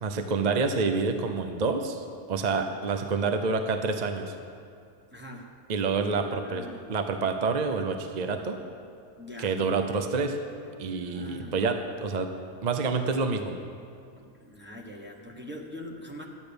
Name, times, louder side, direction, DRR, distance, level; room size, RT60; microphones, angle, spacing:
voice 1, 0.0-4.4 5.7-8.6 9.4-10.4 10.8-12.3 12.6-13.5, right 4 dB, 45° right, 6 dB, 0.6 m, -28 dB
voice 2, 5.1-5.5 6.3-7.0 9.2-9.5 10.0-10.1 11.0-11.6 14.2-16.2, left 1 dB, 10° right, -1 dB, 1.1 m, -43 dB
12.5 x 9.2 x 6.8 m, 2.5 s
omnidirectional pair, 1.6 m